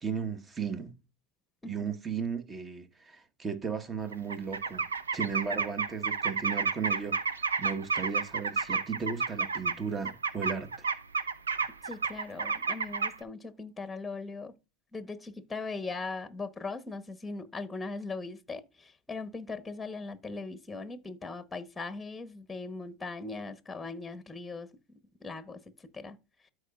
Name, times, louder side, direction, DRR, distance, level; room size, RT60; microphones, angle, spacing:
voice 1, 0.0-1.0 1.6-4.9 5.1-10.9, right 6 dB, 25° right, 1.3 m, -35 dB
sound 1, 4.1-9.8 10.0-13.1, right 4 dB, 90° right, 0.7 m, -30 dB
voice 2, 11.8-14.5 14.9-24.7 25.2-25.6 25.9-26.2, left 3 dB, 10° left, 1.1 m, -39 dB
13.0 x 4.8 x 2.4 m
hypercardioid pair, 85°, 0 cm